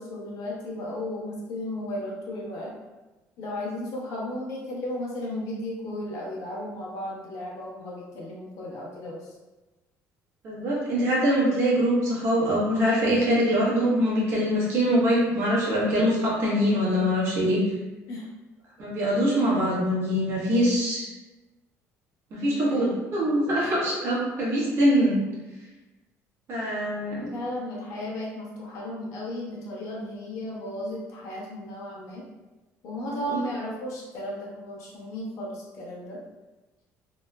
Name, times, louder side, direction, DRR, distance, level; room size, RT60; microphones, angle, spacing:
voice 1, 0.0-2.7 3.4-9.3 18.1-18.3 22.4-22.8 23.4-23.6 27.2-32.2 32.8-36.2, left 1 dB, 65° left, -5 dB, 0.8 m, -35 dB
voice 2, 10.4-17.6 18.8-21.1 22.3-25.2 26.5-27.3 33.3-33.4, equal, 50° right, -7 dB, 1.0 m, -23 dB
3.0 x 2.0 x 2.2 m, 1.1 s
cardioid pair, 150°, 6 cm